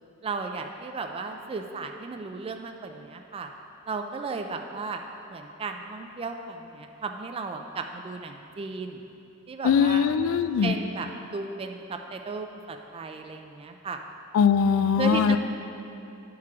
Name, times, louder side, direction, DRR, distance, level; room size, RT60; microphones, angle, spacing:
voice 1, 0.2-3.5 3.9-5.0 5.3-9.0 9.5-10.1 10.6-14.0 14.8-15.4, right 4 dB, 30° right, 4 dB, 0.3 m, -35 dB
voice 2, 9.6-10.8 14.3-15.4, left 7 dB, 85° left, 12 dB, 0.3 m, -21 dB
11.0 x 4.7 x 3.5 m, 2.8 s
head